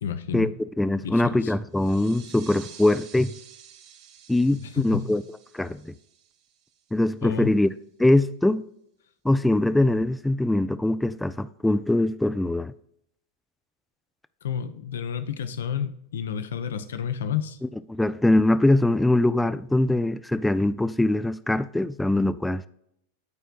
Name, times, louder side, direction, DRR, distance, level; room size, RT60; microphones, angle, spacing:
voice 1, 0.0-0.5 1.0-1.5 4.6-5.1 7.2-7.5 14.4-17.6, left 8 dB, 60° left, 0.8 m, -30 dB
voice 2, 0.8-3.3 4.3-5.2 5.5-5.9 6.9-7.7 8.0-8.7 9.2-12.7 17.9-22.7, left 1 dB, 5° left, 0.4 m, -22 dB
sound 1, 1.7-7.1, right 9 dB, 40° right, 1.0 m, -50 dB
13.5 x 4.5 x 2.3 m
figure-of-eight pair, 90°, 0 cm